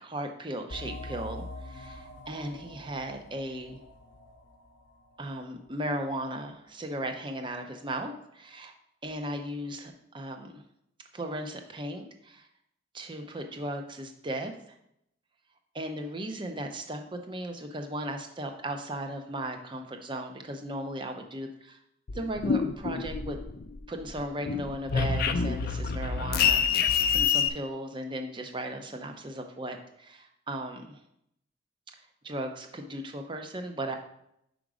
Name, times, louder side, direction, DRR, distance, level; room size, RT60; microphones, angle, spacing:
voice 1, 0.0-3.8 5.2-8.7 9.0-10.6 11.1-12.5 12.9-14.5 15.7-21.8 22.1-23.4 23.9-31.0 32.2-34.0, right 1 dB, 25° right, 4 dB, 0.6 m, -36 dB
sound 1, 0.7-6.0, left 1 dB, 70° left, 0.9 m, -44 dB
sound 2, 22.1-23.8 24.1-27.5, left 6 dB, 50° left, 0.4 m, -27 dB
5.1 x 4.9 x 4.8 m, 0.77 s
head